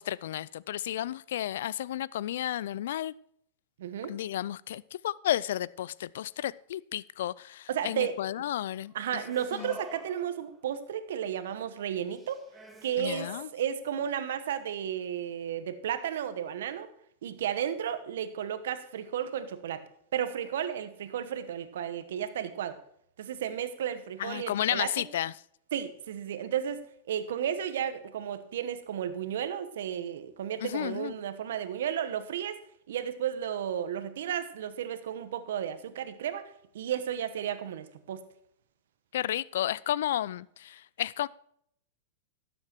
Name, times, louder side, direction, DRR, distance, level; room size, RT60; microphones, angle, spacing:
voice 1, 0.0-3.1 4.0-9.2 9.5-9.8 13.0-13.5 24.2-25.3 30.6-31.1 39.1-41.3, left 12 dB, 75° left, 0.3 m, -32 dB
voice 2, 3.8-4.1 7.7-8.2 8.9-12.5 12.8-16.9 17.2-19.8 20.1-22.8 23.2-24.9 25.7-26.8 27.1-32.6 32.9-38.2, right 9 dB, 75° right, 1.1 m, -33 dB
sound 1, 8.9-10.7 12.1-13.4, equal, 10° right, 1.8 m, -47 dB
12.0 x 7.8 x 4.5 m
hypercardioid pair, 115°, 0 cm